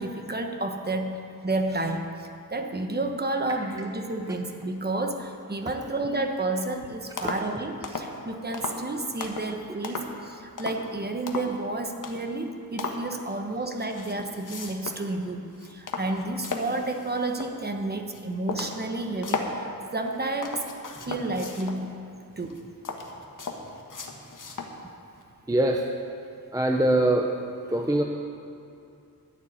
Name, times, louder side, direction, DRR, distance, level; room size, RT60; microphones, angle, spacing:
voice 1, 0.0-20.7 21.0-22.0 22.4-22.6, right 2 dB, 25° right, 4 dB, 1.1 m, -31 dB
sound 1, 6.7-6.8 7.2-7.5 7.8-8.2 8.5-8.8 9.2-9.5 9.8-10.2 10.6-10.9 11.3-11.6 12.0-12.3 12.8-13.1 13.8-15.1 15.4-17.6 18.1-18.2 18.5-19.6 20.1-21.8 22.4-24.8 25.2-25.3, left 4 dB, 60° left, 1.3 m, -36 dB
voice 2, 25.5-25.8 26.5-27.3 27.7-28.0, right 1 dB, 10° right, 1 dB, 0.7 m, -22 dB
12.5 x 7.2 x 9.9 m, 2.5 s
wide cardioid pair, 165°, 36 cm